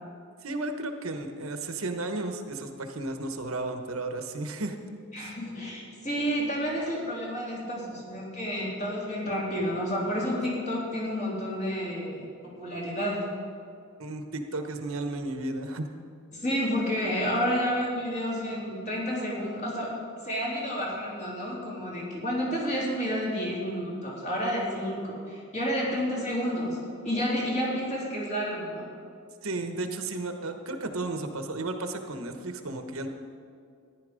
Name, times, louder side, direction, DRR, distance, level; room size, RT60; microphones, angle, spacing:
voice 1, 0.4-4.8 5.2-5.4 14.0-15.9 29.4-33.1, right 2 dB, 80° right, 6 dB, 1.1 m, -33 dB
voice 2, 5.1-13.3 16.3-19.9 20.2-26.8 27.0-28.9, equal, 35° left, -5 dB, 3.4 m, -30 dB
14.5 x 10.5 x 5.2 m, 2.3 s
head